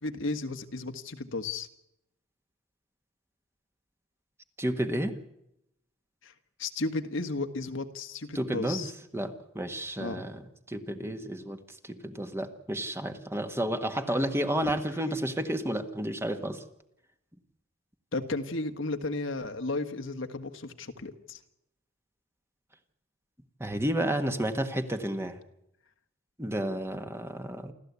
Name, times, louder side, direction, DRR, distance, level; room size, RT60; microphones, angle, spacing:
voice 1, 0.0-1.7 6.2-6.3 6.6-8.9 10.0-10.2 14.6-14.7 18.1-21.4, left 2 dB, 65° left, 7 dB, 1.6 m, -34 dB
voice 2, 4.6-5.2 8.3-10.4 10.7-16.6 23.6-25.4 26.4-27.7, right 1 dB, 10° right, 7 dB, 1.6 m, -31 dB
28.5 x 13.5 x 8.3 m, 0.81 s
head